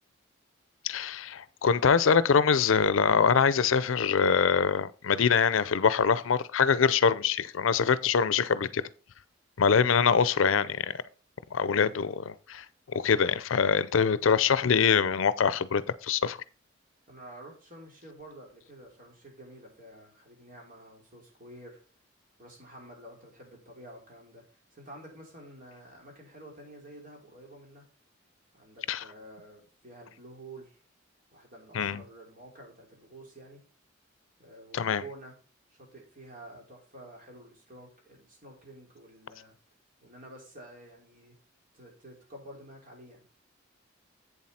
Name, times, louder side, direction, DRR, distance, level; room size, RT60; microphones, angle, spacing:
voice 1, 0.8-8.8 9.6-11.0 11.5-12.6 12.9-16.4 28.9-29.0 31.7-32.0 34.7-35.0, left 6 dB, 80° left, 0.5 m, -24 dB
voice 2, 11.8-12.2 17.1-21.8 22.4-27.9 28.5-30.8 31.3-33.6 34.4-35.4 35.7-39.5 40.0-41.3 41.7-43.2, right 1 dB, 45° right, 3.6 m, -49 dB
8.1 x 7.4 x 4.3 m
head